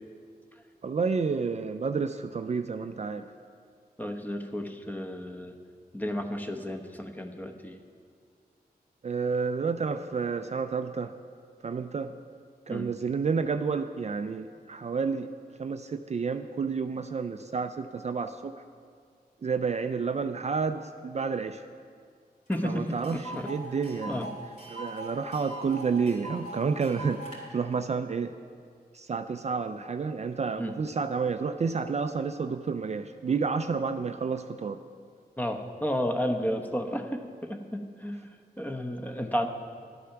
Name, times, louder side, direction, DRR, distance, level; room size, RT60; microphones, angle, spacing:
voice 1, 0.8-3.3 9.0-11.1 11.6-12.1 12.7-15.3 15.6-18.6 19.4-21.6 22.6-24.3 24.7-28.3 28.9-34.8, right 5 dB, 45° right, 8 dB, 0.4 m, -30 dB
voice 2, 4.0-5.5 5.9-7.8 12.7-12.9 22.5-22.9 23.1-23.5 24.1-24.3 30.6-30.7 35.4-37.2 37.7-38.2 38.6-39.5, equal, 10° left, 5 dB, 0.9 m, -32 dB
Tick, 22.5-22.6 22.9-27.4, right 1 dB, 50° left, 2.8 m, -41 dB
12.0 x 8.4 x 5.8 m, 2.2 s
cardioid pair, 75°, 17 cm